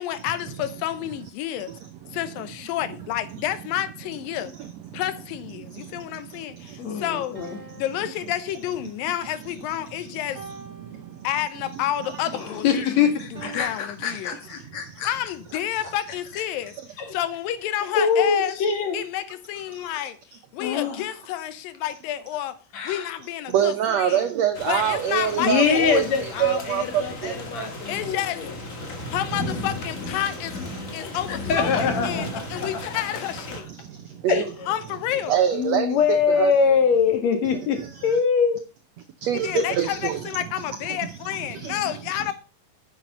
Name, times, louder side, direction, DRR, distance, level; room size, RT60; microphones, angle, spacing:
voice 1, 0.0-1.8 2.1-4.5 4.9-7.4 7.8-10.5 11.2-12.7 13.0-14.4 15.0-16.7 17.1-18.6 18.9-20.2 20.5-22.6 22.8-24.3 24.7-25.9 27.9-28.5 29.1-30.6 30.9-33.7 34.7-35.4 39.3-42.3, left 12 dB, 85° left, 2.6 m, -30 dB
voice 2, 4.6-5.0 5.7-7.0 9.9-10.0 10.8-11.3 12.1-12.3 14.7-15.0 19.7-19.9 23.5-27.8 32.6-32.7 33.7-34.5 35.3-36.5 39.2-40.3 41.5-41.9, right 9 dB, 80° right, 1.5 m, -26 dB
voice 3, 6.8-7.6 12.3-15.1 17.0-17.2 17.9-19.0 20.6-21.0 22.7-23.1 25.4-28.5 31.0-32.8 34.3-34.7 35.5-38.6, left 6 dB, 55° left, 2.8 m, -24 dB
sound 1, 7.3-9.1 10.3-11.8 13.3-13.6, right 4 dB, 10° right, 1.8 m, -45 dB
sound 2, 24.6-33.6, left 1 dB, 35° left, 1.4 m, -34 dB
9.3 x 7.7 x 5.5 m
omnidirectional pair, 4.1 m